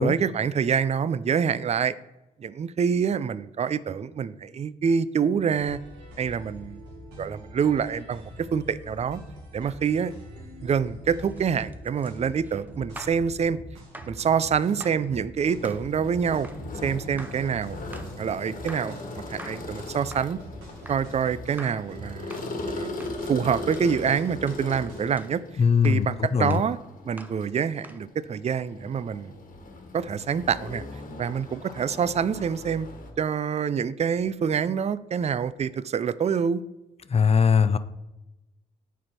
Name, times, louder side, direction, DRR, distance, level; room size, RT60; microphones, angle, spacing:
voice 1, 0.0-1.9 2.4-5.8 6.2-6.8 7.2-9.2 9.5-10.1 10.6-13.6 14.1-16.5 16.8-17.8 18.2-19.0 19.3-20.4 20.9-22.9 23.2-25.4 25.8-26.8 27.1-29.3 29.9-30.8 31.2-32.9 33.2-36.6, right 7 dB, 40° right, 16 dB, 0.4 m, -26 dB
sound 1, 5.5-25.3, equal, 85° right, 1.8 m, -44 dB
sound 2, 11.2-13.3 13.9-14.2 14.8-15.1 15.6-15.9 16.4-16.7 17.2-17.5 17.9-18.2 18.7-19.0 19.4-19.7 20.1-20.4 20.9-21.1 21.6-21.9 22.3-22.5 23.0-23.2 23.7-23.9 24.5-24.7 25.2-25.4 25.8-26.1 26.5-26.7 27.2-27.4 27.8-28.1, right 1 dB, 10° right, 0.7 m, -45 dB
sound 3, 15.4-33.1, left 2 dB, 55° left, 1.7 m, -39 dB
voice 2, 25.6-26.1 26.3-26.6 37.1-37.8, left 6 dB, 35° left, 13 dB, 0.6 m, -20 dB
9.2 x 4.4 x 4.3 m, 0.98 s
supercardioid pair, 60°, 17 cm